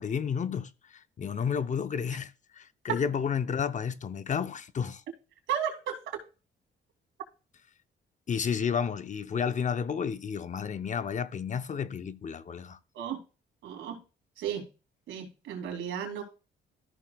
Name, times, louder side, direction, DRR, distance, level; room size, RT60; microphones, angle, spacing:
voice 1, 0.0-5.0 8.3-12.8, left 7 dB, 40° left, 0.6 m, -31 dB
voice 2, 5.5-6.2 12.9-13.2 13.6-14.0 14.4-14.6 15.1-16.2, right 9 dB, 85° right, 2.7 m, -33 dB
13.5 x 6.5 x 2.3 m
cardioid pair, 90°, 20 cm